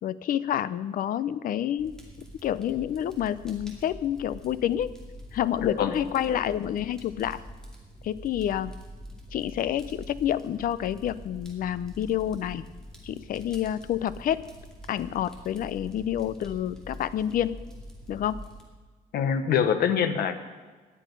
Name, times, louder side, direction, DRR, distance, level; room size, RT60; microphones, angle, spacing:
voice 1, 0.0-4.9 5.3-7.4 8.0-8.7 9.3-12.6 13.0-14.4 14.9-17.6 18.1-18.4, left 10 dB, 65° left, 16 dB, 0.6 m, -28 dB
Fire, 1.8-18.6, equal, 5° left, 2.5 m, -45 dB
voice 2, 5.6-6.0 19.1-20.4, left 7 dB, 85° left, 9 dB, 1.2 m, -24 dB
18.5 x 11.5 x 5.4 m, 1.4 s
cardioid pair, 170°, 16 cm